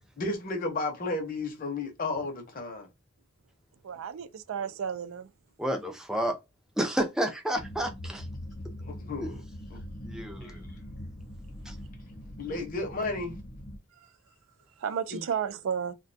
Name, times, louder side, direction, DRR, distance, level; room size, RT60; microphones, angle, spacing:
voice 1, 0.2-2.9 8.8-9.4 9.7-9.8 10.4-10.6 12.4-13.4 15.1-15.2, left 2 dB, 45° left, 0.7 m, -33 dB
voice 2, 3.8-5.3 14.8-15.9, right 7 dB, 90° right, 0.4 m, -32 dB
voice 3, 5.6-6.4 6.8-8.2 9.2-9.3 10.0-10.6 11.7-11.8, right 1 dB, 5° right, 0.4 m, -30 dB
sound 1, 7.6-13.8, equal, 65° left, 0.9 m, -42 dB
2.3 x 2.2 x 2.6 m
head